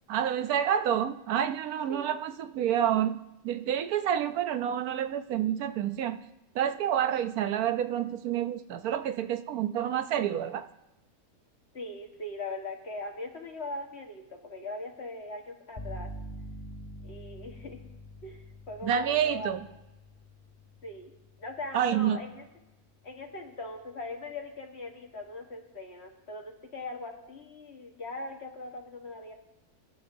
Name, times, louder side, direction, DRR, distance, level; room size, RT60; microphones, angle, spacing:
voice 1, 0.1-3.2 3.4-6.2 6.5-10.6 18.8-19.6 21.7-22.2, right 9 dB, 75° right, 10 dB, 1.1 m, -28 dB
voice 2, 11.7-16.1 17.0-17.8 18.2-19.5 20.8-21.1 21.4-22.4 23.0-29.3, left 2 dB, 45° left, 2 dB, 1.7 m, -40 dB
sound 1, 15.8-23.5, equal, 25° left, 0.7 m, -46 dB
23.0 x 11.0 x 2.7 m, 0.93 s
omnidirectional pair, 1.6 m